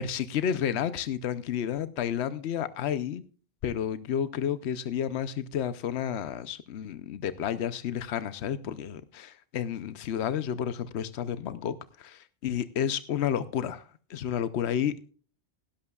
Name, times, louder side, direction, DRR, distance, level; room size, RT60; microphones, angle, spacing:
voice 1, 0.0-3.2 3.6-15.1, left 9 dB, 80° left, 1.0 m, -31 dB
18.5 x 11.0 x 2.3 m
omnidirectional pair, 1.1 m